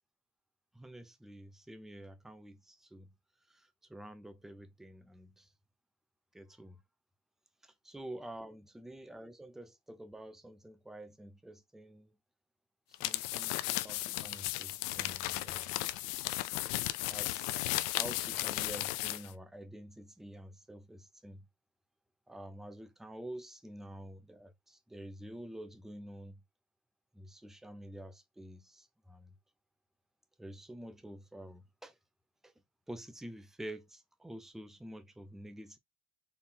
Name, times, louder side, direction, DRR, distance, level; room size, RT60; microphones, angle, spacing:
voice 1, 0.7-3.1 3.5-5.5 6.3-6.8 7.6-12.2 12.9-15.7 16.4-16.5 17.1-21.5 22.3-26.4 27.1-29.4 30.4-32.0 32.4-32.5 32.9-35.8, right 1 dB, ahead, 0.4 m, -48 dB
sound 1, 12.9-19.3, left 18 dB, 75° left, 0.6 m, -35 dB
4.4 x 3.5 x 2.7 m
supercardioid pair, 130°, 41 cm